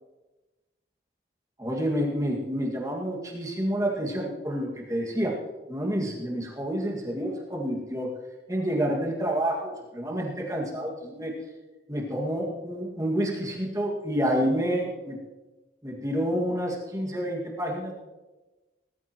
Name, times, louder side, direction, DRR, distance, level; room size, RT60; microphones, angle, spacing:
voice 1, 1.6-5.3 5.7-8.1 8.5-11.3 11.9-15.2 15.8-17.9, equal, 20° right, -2 dB, 2.0 m, -29 dB
19.5 x 13.5 x 3.1 m, 1.1 s
head